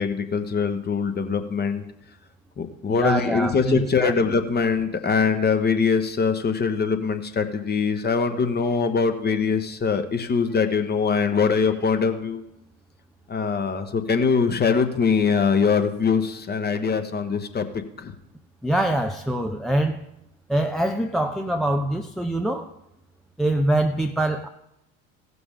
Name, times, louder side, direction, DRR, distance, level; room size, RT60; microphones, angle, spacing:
voice 1, 0.0-1.8 2.6-12.4 13.3-18.1, left 5 dB, 25° left, 8 dB, 1.2 m, -23 dB
voice 2, 2.9-4.1 18.6-20.0 20.5-22.7 23.4-24.5, right 1 dB, ahead, 4 dB, 0.5 m, -24 dB
17.0 x 6.1 x 3.7 m, 0.84 s
figure-of-eight pair, 65°, 40 cm